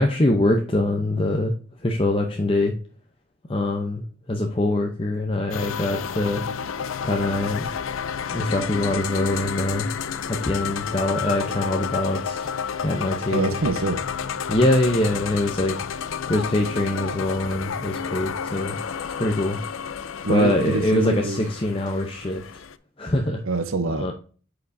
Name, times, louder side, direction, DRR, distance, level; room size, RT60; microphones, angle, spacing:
voice 1, 0.0-1.5 1.8-2.7 3.5-6.4 7.0-7.7 8.3-9.9 10.3-12.5 12.8-13.5 14.5-15.8 16.3-18.8 19.2-19.6 20.3-22.4 23.0-23.4 24.0-24.1, left 1 dB, 25° left, 0.6 m, -23 dB
sound 1, 5.5-22.8, left 7 dB, 75° left, 0.5 m, -31 dB
voice 2, 13.3-14.0 20.2-21.4 23.4-24.1, right 3 dB, 80° right, 0.8 m, -25 dB
8.2 x 4.9 x 2.6 m
head